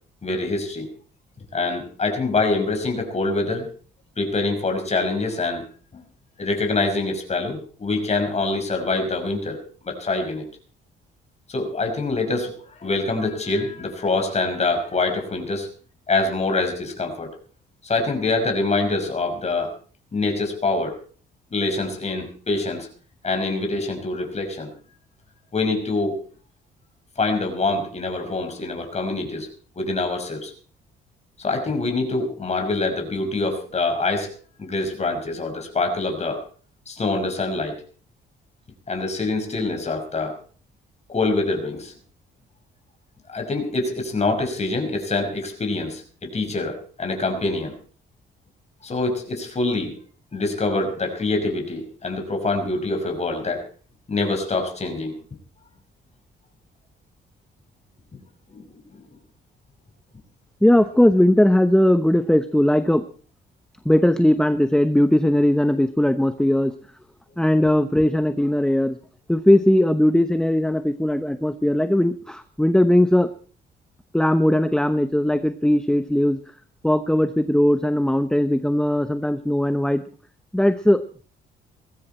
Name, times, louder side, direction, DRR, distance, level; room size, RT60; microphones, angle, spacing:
voice 1, 0.2-0.9 1.5-3.7 4.2-5.7 5.9-6.0 6.4-9.6 9.9-10.4 11.5-15.7 16.1-17.3 17.8-19.7 20.1-21.0 21.5-22.9 23.2-24.7 25.5-26.2 27.2-29.5 29.8-30.5 31.4-36.4 36.9-37.8 38.9-40.4 41.1-41.9 43.3-47.8 48.8-50.0 50.3-53.6 54.1-55.1 58.5-58.7 59.0-59.1, left 3 dB, 35° left, 4 dB, 5.5 m, -25 dB
voice 2, 60.6-63.1 63.8-66.7 67.4-69.0 69.3-73.3 74.1-76.4 76.8-80.0 80.5-81.0, left 1 dB, 5° left, 11 dB, 0.9 m, -19 dB
20.0 x 15.0 x 4.4 m, 0.42 s
cardioid pair, 90°, 20 cm